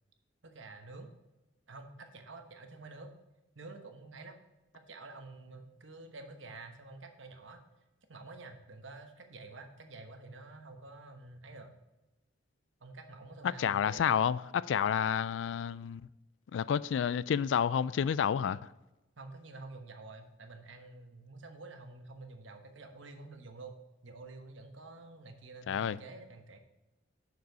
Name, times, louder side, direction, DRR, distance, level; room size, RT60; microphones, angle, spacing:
voice 1, 0.4-1.1 1.7-3.1 3.5-4.4 4.9-7.6 8.1-11.8 12.8-14.1 19.2-23.8 24.0-26.6, right 3 dB, 80° right, 1.2 m, -49 dB
voice 2, 13.6-16.0 16.5-18.7 25.7-26.0, left 8 dB, 70° left, 0.3 m, -30 dB
6.8 x 6.7 x 4.8 m
head